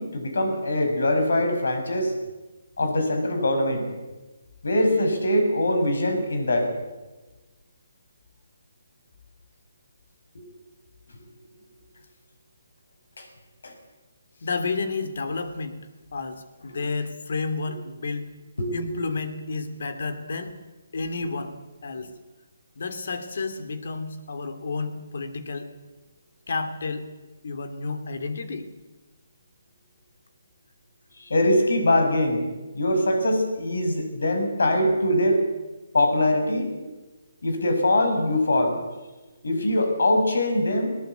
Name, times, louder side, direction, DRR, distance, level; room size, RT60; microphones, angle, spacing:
voice 1, 0.0-2.1 2.8-3.9 4.6-6.7 10.3-10.4 13.2-13.3 13.6-13.7 18.6-19.0 31.2-32.5 32.7-35.4 35.9-36.7 37.4-38.8 39.4-41.0, left 1 dB, 80° left, 6 dB, 6.2 m, -22 dB
voice 2, 14.4-15.8 16.1-18.3 18.7-20.6 20.9-22.1 22.8-25.7 26.5-27.1 27.4-28.7, left 4 dB, 65° left, 9 dB, 3.0 m, -31 dB
20.0 x 19.0 x 8.3 m, 1.2 s
hypercardioid pair, 155°, 0 cm